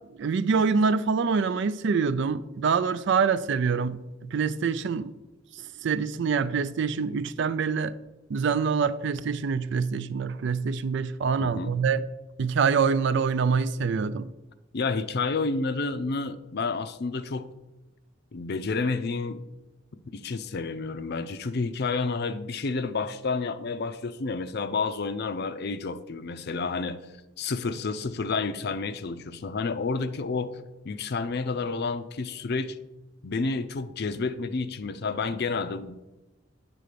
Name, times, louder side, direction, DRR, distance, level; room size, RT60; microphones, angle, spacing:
voice 1, 0.2-5.1 5.8-7.9 8.3-12.0 12.4-14.3, right 5 dB, 60° right, 0.4 m, -25 dB
voice 2, 11.4-11.7 14.7-17.5 18.3-19.4 20.1-27.0 27.4-30.6 30.8-32.8 33.2-35.9, left 4 dB, 55° left, 0.5 m, -30 dB
9.3 x 3.8 x 6.7 m
head